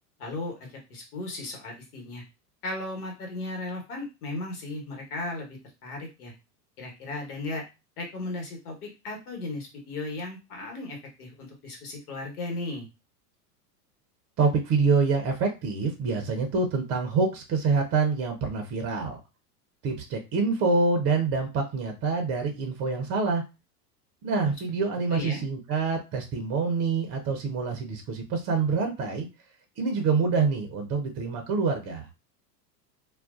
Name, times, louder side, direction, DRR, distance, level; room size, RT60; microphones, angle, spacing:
voice 1, 0.2-2.2 2.6-6.3 6.8-7.6 8.0-12.9 24.4-24.5 25.1-25.4, left 2 dB, 65° left, 1 dB, 1.3 m, -36 dB
voice 2, 14.4-19.2 19.8-23.4 24.2-29.3 29.8-32.1, right 4 dB, 30° right, 3 dB, 0.7 m, -26 dB
2.3 x 2.2 x 2.4 m, 0.27 s
hypercardioid pair, 90°, 48 cm